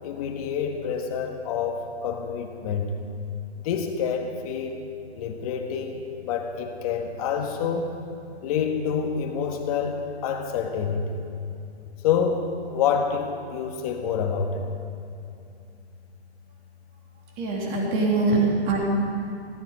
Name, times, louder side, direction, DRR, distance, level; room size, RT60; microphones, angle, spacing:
voice 1, 0.0-2.9 3.6-4.9 5.2-7.9 8.4-11.2 12.0-14.7, left 6 dB, 35° left, 3 dB, 1.6 m, -27 dB
voice 2, 17.4-18.8, right 3 dB, 25° right, -2 dB, 3.0 m, -23 dB
16.5 x 13.5 x 5.6 m, 2.7 s
hypercardioid pair, 150°, 34 cm